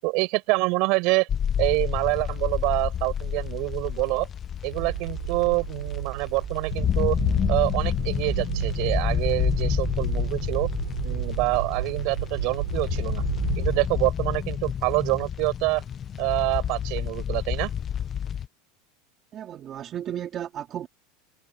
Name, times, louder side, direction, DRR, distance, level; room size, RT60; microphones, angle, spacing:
voice 1, 0.0-1.3 1.6-4.3 4.6-7.2 7.5-10.7 11.0-13.2 13.6-15.8 16.2-17.7, right 27 dB, 55° right, 6.8 m, -26 dB
sound 1, 1.3-18.5, left 9 dB, 25° left, 0.9 m, -29 dB
sound 2, 4.7-13.9, right 16 dB, 85° right, 6.8 m, -32 dB
voice 2, 19.3-20.9, right 10 dB, 35° right, 2.8 m, -34 dB
supercardioid pair, 135°, 0 cm